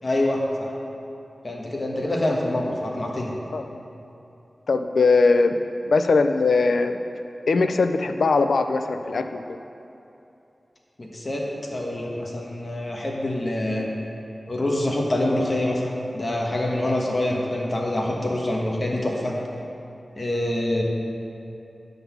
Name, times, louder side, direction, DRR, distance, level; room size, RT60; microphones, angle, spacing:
voice 1, 0.0-0.7 1.4-3.3 11.0-13.9 14.5-19.4 20.1-20.8, left 1 dB, 35° left, -2 dB, 1.2 m, -26 dB
voice 2, 4.7-5.6 5.9-7.0 7.5-9.6, left 3 dB, 85° left, 8 dB, 0.4 m, -20 dB
9.1 x 4.0 x 7.0 m, 2.8 s
wide cardioid pair, 100°, 0 cm